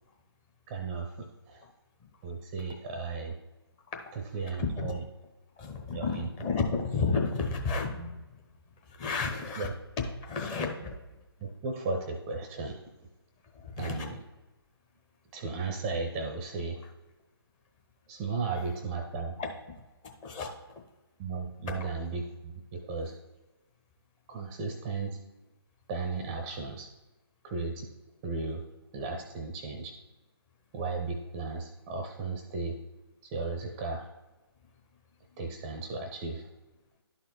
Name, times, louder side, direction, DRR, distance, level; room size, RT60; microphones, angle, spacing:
voice 1, 0.7-1.6 2.2-3.4 4.3-5.0 5.9-6.3 9.6-9.7 11.4-13.1 13.8-14.2 15.3-16.8 18.1-19.4 21.2-23.1 24.3-25.2 25.9-26.9 27.4-27.9 28.2-28.6 28.9-30.0 30.7-32.8 33.2-34.1 35.4-36.5, right 4 dB, 15° right, 4 dB, 0.6 m, -35 dB
voice 2, 4.6-4.9 5.6-8.4 8.8-9.7 10.0-11.0 13.5-14.1 19.4-19.5 20.0-20.5 21.7-21.8, left 4 dB, 20° left, 2 dB, 0.9 m, -32 dB
11.0 x 4.2 x 4.3 m, 1.1 s
figure-of-eight pair, 140°, 13 cm